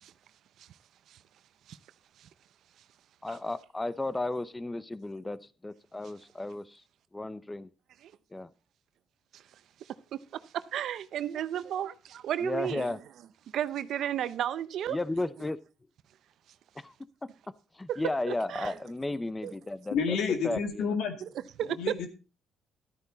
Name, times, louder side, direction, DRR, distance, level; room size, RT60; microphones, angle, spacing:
voice 1, 3.2-6.8 7.1-7.7 8.3-8.5 12.4-13.0 14.9-15.6 16.8-16.9 17.8-20.2 20.4-21.0, left 2 dB, 15° left, 0.7 m, -34 dB
voice 2, 10.7-12.9 13.5-15.0 17.9-18.0 18.3-18.7 19.4-19.5 21.6-21.8, right 10 dB, 75° right, 0.7 m, -33 dB
voice 3, 19.9-21.1 21.8-22.1, left 6 dB, 85° left, 2.2 m, -29 dB
12.5 x 9.2 x 4.0 m
cardioid pair, 90°, 0 cm